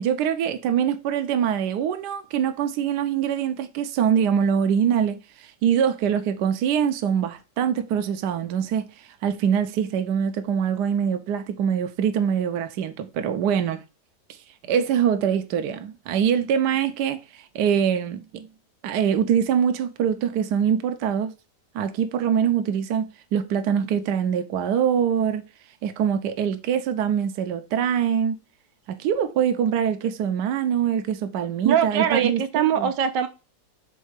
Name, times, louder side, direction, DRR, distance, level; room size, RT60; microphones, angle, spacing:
voice 1, 0.0-13.8 14.6-18.5 18.8-21.3 21.7-25.4 25.8-28.4 28.9-32.9, right 8 dB, 75° right, 1.3 m, -24 dB
voice 2, 31.6-33.3, right 8 dB, 90° right, 1.5 m, -22 dB
5.4 x 4.0 x 4.9 m
omnidirectional pair, 1.9 m